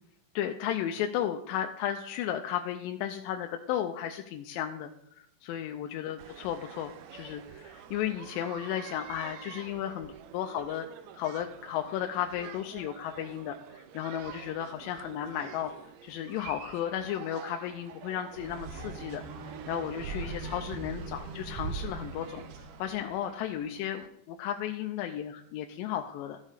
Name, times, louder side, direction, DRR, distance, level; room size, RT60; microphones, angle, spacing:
voice 1, 0.4-4.9 5.4-10.9 11.1-15.7 16.0-26.4, left 10 dB, 90° left, 5 dB, 2.3 m, -34 dB
sound 1, 6.2-24.1, right 10 dB, 85° right, 1.5 m, -49 dB
sound 2, 18.3-23.2, right 4 dB, 70° right, 1.3 m, -40 dB
13.0 x 6.4 x 4.9 m, 0.79 s
omnidirectional pair, 3.9 m